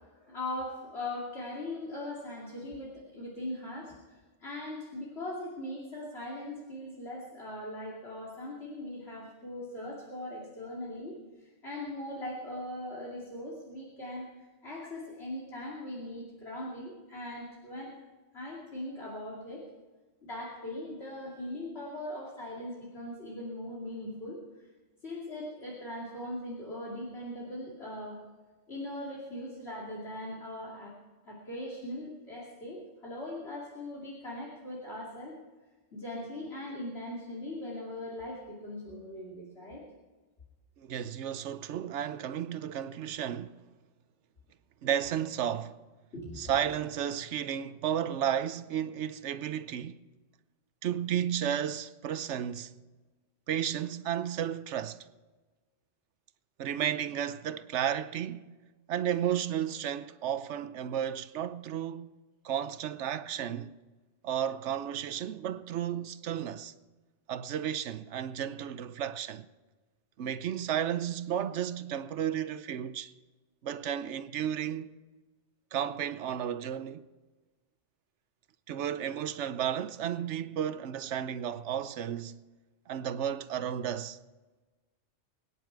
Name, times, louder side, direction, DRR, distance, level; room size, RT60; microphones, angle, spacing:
voice 1, 0.1-17.9 18.3-19.6 20.3-24.4 25.0-28.2 28.7-30.9 31.2-35.4 35.9-39.8 46.1-46.5, left 1 dB, 65° left, 3.0 m, -40 dB
voice 2, 40.8-43.6 44.8-45.8 46.4-50.0 50.8-52.7 53.5-55.1 56.6-58.5 58.9-62.1 62.4-63.7 64.2-66.7 67.3-69.5 70.2-73.1 73.6-74.9 75.7-77.0 78.7-82.4 82.9-84.2, right 9 dB, 80° right, 1.0 m, -33 dB
23.5 x 9.8 x 4.6 m
omnidirectional pair, 1.2 m